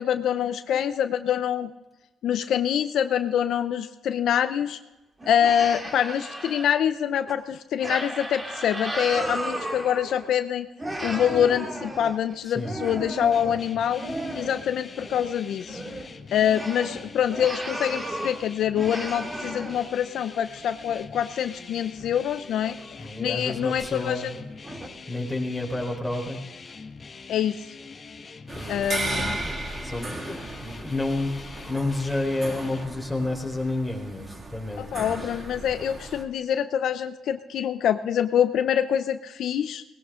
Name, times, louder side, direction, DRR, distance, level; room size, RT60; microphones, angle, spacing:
voice 1, 0.0-1.7 2.2-4.8 5.3-10.7 11.0-14.0 14.3-15.8 16.3-24.3 27.3-27.6 28.7-29.4 34.8-39.8, left 9 dB, 75° left, 10 dB, 0.6 m, -25 dB
sound 1, 5.2-6.7 7.3-7.4 7.8-10.4 10.8-14.7 14.9-15.3 15.6-18.4 18.7-20.1 20.6-20.7 22.0-22.1 22.6-22.9 23.3-23.4 24.0-24.1 24.6-24.9, right 1 dB, 20° right, 2.4 m, -34 dB
voice 2, 12.4-12.8 23.0-24.4 25.1-26.4 28.5-35.4, left 2 dB, 5° left, 0 dB, 4.2 m, -31 dB
sound 2, 13.3-32.9, left 4 dB, 35° left, 1.1 m, -44 dB
sound 3, 28.5-36.2, right 2 dB, 35° right, 2.2 m, -35 dB
19.0 x 16.5 x 3.8 m, 1.1 s
cardioid pair, 90°, 0 cm